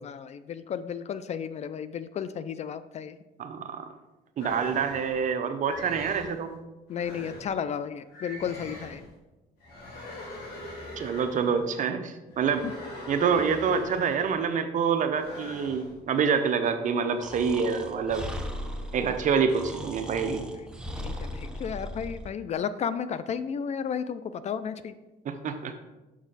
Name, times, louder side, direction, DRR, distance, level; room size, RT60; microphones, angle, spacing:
voice 1, 0.0-3.2 6.9-9.0 21.0-25.0, left 7 dB, 40° left, 13 dB, 0.4 m, -33 dB
voice 2, 3.4-3.9 4.4-6.5 11.0-12.6 13.1-18.2 18.9-20.4 25.2-25.8, right 6 dB, 50° right, 7 dB, 0.7 m, -27 dB
sound 1, 4.4-5.2 5.6-6.4 6.9-7.5 8.1-9.1 9.6-11.6 12.3-14.5 15.1-15.9, left 1 dB, 75° left, 2.5 m, -42 dB
Breathing, 17.2-22.3, left 1 dB, 5° right, 0.8 m, -37 dB
6.2 x 6.1 x 4.0 m, 1.1 s
cardioid pair, 110°, 17 cm